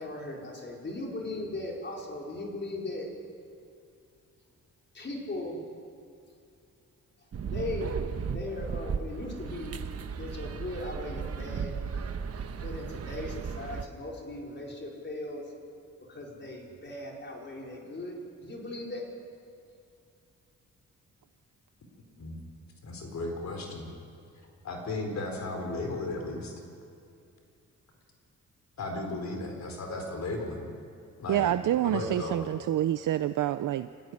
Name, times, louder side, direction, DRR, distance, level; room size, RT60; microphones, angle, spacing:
voice 1, 0.0-3.1 4.9-5.6 7.4-7.9 8.3-9.8 10.2-11.8 12.6-15.5 16.1-19.0, left 2 dB, 35° left, -1 dB, 4.8 m, -38 dB
sound 1, 7.3-13.9, right 6 dB, 50° right, 1.2 m, -35 dB
voice 2, 22.8-23.9 24.6-26.5 28.8-30.7 31.2-31.5 31.8-32.4, left 2 dB, 60° left, 3 dB, 4.3 m, -35 dB
voice 3, 31.3-34.1, right 12 dB, 75° right, 11 dB, 0.6 m, -28 dB
25.0 x 15.5 x 9.8 m, 2.5 s
cardioid pair, 115°, 32 cm